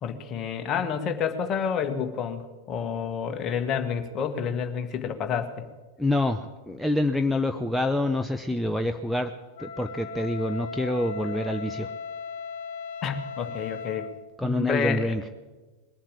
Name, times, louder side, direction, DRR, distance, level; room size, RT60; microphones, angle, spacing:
voice 1, 0.0-5.6 13.0-14.1 14.4-15.1, left 7 dB, 30° left, 7 dB, 1.5 m, -29 dB
voice 2, 6.0-9.3 9.6-11.9 14.4-15.2, left 1 dB, ahead, 6 dB, 0.6 m, -26 dB
Wind instrument woodwind instrument, 9.6-14.2, left 5 dB, 50° left, 2.1 m, -37 dB
20.5 x 7.4 x 8.8 m, 1.3 s
figure-of-eight pair, 90°, 0 cm